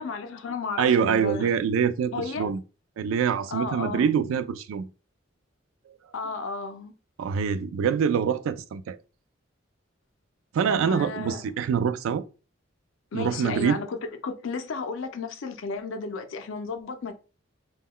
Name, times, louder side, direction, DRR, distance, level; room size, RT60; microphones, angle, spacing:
voice 1, 0.0-1.5 2.1-2.5 3.5-4.1 6.1-6.9 10.7-11.4 13.1-14.0 14.2-17.1, left 4 dB, 75° left, 0.5 m, -33 dB
voice 2, 0.8-2.6 3.0-4.9 7.2-9.0 10.5-12.2 13.1-13.8, right 7 dB, 85° right, 0.3 m, -25 dB
2.2 x 2.2 x 3.6 m
head